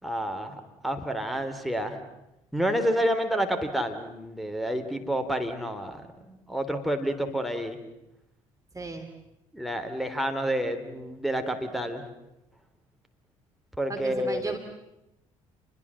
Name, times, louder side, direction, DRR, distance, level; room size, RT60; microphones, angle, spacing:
voice 1, 0.0-2.0 2.5-7.8 9.5-12.0 13.8-14.5, right 1 dB, ahead, 5 dB, 3.6 m, -29 dB
voice 2, 8.7-9.1 13.9-14.6, right 2 dB, 20° right, 4 dB, 2.9 m, -34 dB
29.5 x 21.5 x 7.6 m, 0.91 s
figure-of-eight pair, 50°, 17 cm